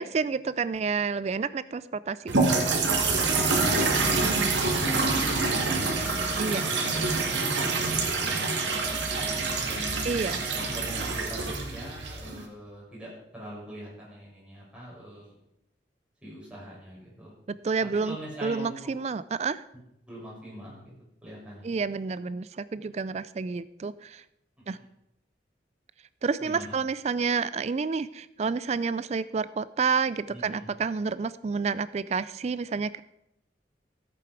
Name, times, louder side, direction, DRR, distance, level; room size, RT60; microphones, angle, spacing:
voice 1, 0.0-3.0 4.2-4.8 6.4-6.6 10.0-10.5 17.5-18.2 18.4-19.6 21.6-24.2 24.7-24.8 26.2-33.0, right 5 dB, 35° right, 16 dB, 0.3 m, -29 dB
sound 1, 2.3-12.4, right 3 dB, 90° right, 2.1 m, -26 dB
voice 2, 4.8-6.0 6.5-9.9 10.6-15.4 16.2-17.3 18.0-18.9 20.1-20.9 21.2-21.7 26.4-26.7 30.3-30.6, right 1 dB, 5° right, -7 dB, 5.9 m, -43 dB
14.5 x 8.4 x 4.7 m, 0.80 s
head